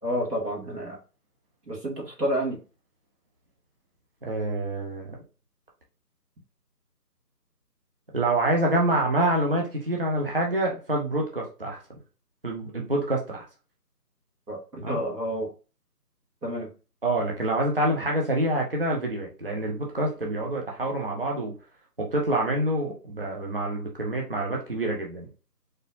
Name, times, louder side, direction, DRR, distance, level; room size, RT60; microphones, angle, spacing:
voice 1, 0.0-1.0 1.7-2.6 14.5-15.5 16.4-16.7, equal, 70° right, -2 dB, 2.2 m, -29 dB
voice 2, 4.2-5.1 8.1-11.8 12.4-13.5 14.8-15.0 17.0-21.5 22.0-25.3, right 1 dB, 35° right, 0 dB, 0.7 m, -26 dB
4.4 x 3.2 x 2.6 m, 0.33 s
figure-of-eight pair, 170°, 48 cm